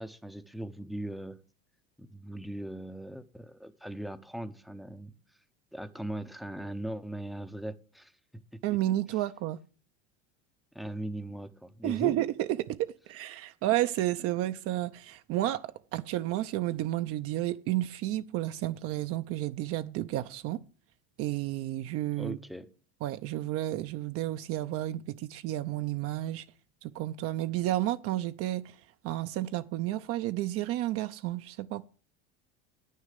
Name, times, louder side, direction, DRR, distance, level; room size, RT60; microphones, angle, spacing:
voice 1, 0.0-1.4 2.0-5.1 5.7-8.1 10.7-12.2 14.2-14.3 22.2-22.7, right 1 dB, ahead, 0.6 m, -39 dB
voice 2, 8.6-9.6 11.8-20.6 21.2-22.4 23.0-26.4 26.8-28.7 29.0-31.9, right 15 dB, 50° right, 0.6 m, -31 dB
9.2 x 6.5 x 6.6 m
supercardioid pair, 125°, 30 cm